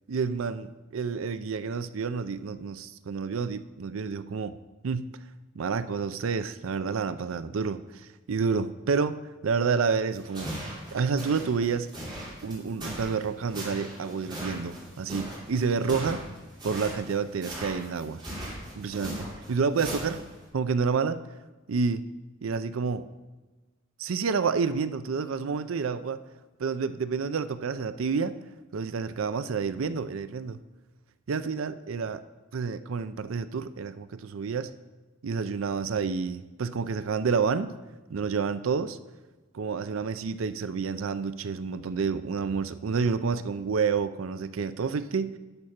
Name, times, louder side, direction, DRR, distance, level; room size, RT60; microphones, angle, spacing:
voice 1, 0.1-4.6 4.8-5.0 5.6-7.8 8.3-10.5 10.9-11.9 12.4-16.2 16.6-18.2 18.8-20.2 20.5-21.2 21.7-22.0 22.4-23.0 24.0-26.2 26.6-28.3 28.7-30.6 31.3-32.2 32.5-34.7 35.2-37.7 38.1-39.0 39.5-45.4, right 5 dB, 80° right, 13 dB, 0.5 m, -29 dB
sound 1, 10.1-20.4, right 1 dB, 25° right, 3.1 m, -39 dB
11.0 x 5.3 x 5.8 m, 1.2 s
head